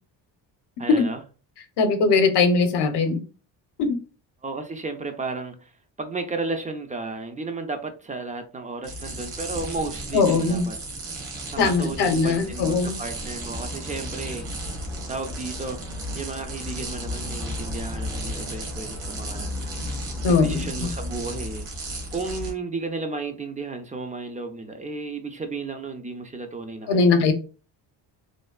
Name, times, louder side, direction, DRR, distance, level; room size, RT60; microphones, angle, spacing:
voice 1, 0.8-1.2 4.4-5.7 6.0-10.8 11.5-14.5 15.1-15.8 16.1-19.5 20.3-21.7 22.1-27.3, right 3 dB, 20° right, 0.3 m, -33 dB
voice 2, 1.8-3.2 3.8-3.9 10.1-10.7 11.6-12.9 20.2-20.9 26.9-27.3, left 4 dB, 65° left, 0.7 m, -20 dB
sound 1, 8.8-22.5, equal, 80° right, 1.3 m, -33 dB
3.2 x 2.2 x 2.2 m
cardioid pair, 90°, 46 cm